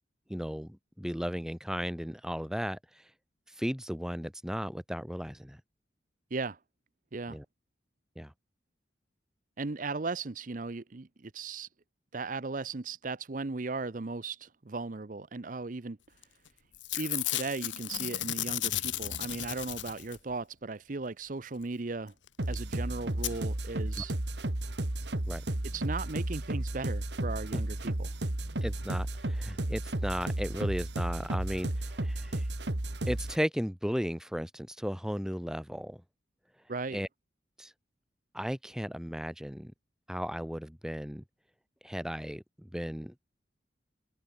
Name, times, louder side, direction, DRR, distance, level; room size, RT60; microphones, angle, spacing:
voice 1, 0.3-3.0 3.6-5.6 7.3-7.4 8.2-8.3 24.0-24.1 25.2-25.4 27.5-27.6 28.6-32.5 33.1-36.0 36.9-37.1 37.6-37.7 38.3-39.7 40.1-41.2 41.8-43.1, equal, 5° right, 4.3 m, -35 dB
voice 2, 9.6-11.7 12.1-16.0 16.9-22.1 22.5-24.1 25.7-28.1 36.7-37.0, right 3 dB, 45° right, 0.7 m, -37 dB
Packing tape duct tape / Tearing, 16.2-16.5 16.7-20.3 22.3-22.4 22.5-22.6 23.2-23.3 24.0-24.1 24.3-24.4, left 14 dB, 90° left, 1.5 m, -34 dB
sound 1, 22.4-33.4, right 1 dB, 70° right, 2.0 m, -33 dB
head